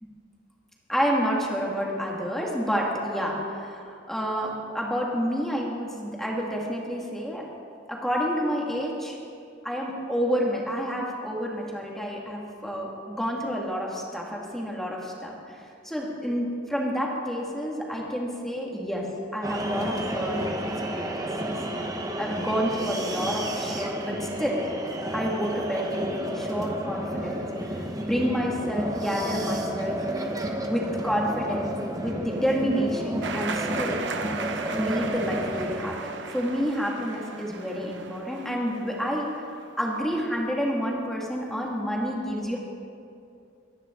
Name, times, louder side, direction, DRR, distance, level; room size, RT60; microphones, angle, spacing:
voice 1, 0.9-7.4 7.9-9.2 9.6-15.6 15.8-19.0 19.3-20.6 20.9-21.6 22.2-24.6 25.1-27.4 28.0-30.0 30.6-34.0 34.7-39.3 39.8-42.6, equal, ahead, -2 dB, 2.1 m, -29 dB
sound 1, 19.4-35.8, right 1 dB, 20° right, 1.1 m, -31 dB
sound 2, 33.2-39.8, right 4 dB, 75° right, 1.0 m, -36 dB
24.0 x 10.5 x 3.8 m, 2.5 s
head